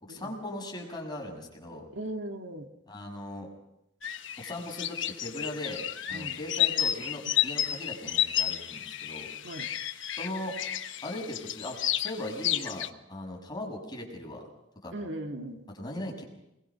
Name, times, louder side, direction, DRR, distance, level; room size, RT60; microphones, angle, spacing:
voice 1, 0.0-1.8 2.9-3.5 4.4-5.8 6.1-9.3 10.2-10.5 11.0-14.4 14.8-14.9 15.7-16.2, left 1 dB, 20° left, 0 dB, 6.3 m, -39 dB
voice 2, 1.9-2.7 6.1-6.4 9.4-9.6 14.9-15.6, right 1 dB, 65° right, 4 dB, 2.1 m, -38 dB
sound 1, 4.0-12.9, left 11 dB, 70° left, 1.3 m, -31 dB
27.0 x 22.0 x 5.8 m, 0.86 s
head